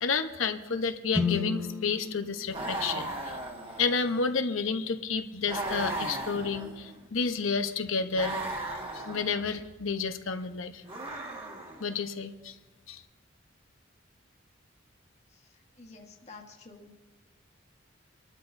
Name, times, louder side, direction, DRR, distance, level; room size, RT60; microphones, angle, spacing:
voice 1, 0.0-3.4 3.8-10.8 11.8-12.6 12.9-13.0, left 5 dB, 85° left, 7 dB, 0.9 m, -31 dB
sound 1, 1.1-5.2, left 4 dB, 10° right, 1.9 m, -36 dB
sound 2, 2.5-4.3 5.5-7.0 8.1-9.5 10.8-11.9, right 2 dB, 30° right, 1.7 m, -36 dB
voice 2, 15.7-16.9, left 3 dB, 35° left, 0 dB, 1.4 m, -50 dB
25.5 x 12.0 x 2.7 m, 1.2 s
head